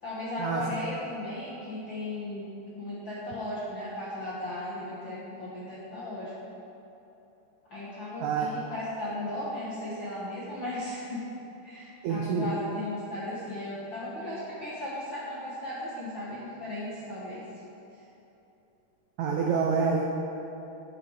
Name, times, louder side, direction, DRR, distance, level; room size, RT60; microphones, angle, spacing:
voice 1, 0.0-2.5 2.8-6.3 7.7-11.3 11.6-17.4, left 1 dB, 60° left, -8 dB, 1.2 m, -36 dB
voice 2, 12.0-12.5 19.2-20.0, right 6 dB, 85° right, 0 dB, 1.6 m, -27 dB
12.0 x 7.8 x 4.9 m, 3.0 s
omnidirectional pair, 4.3 m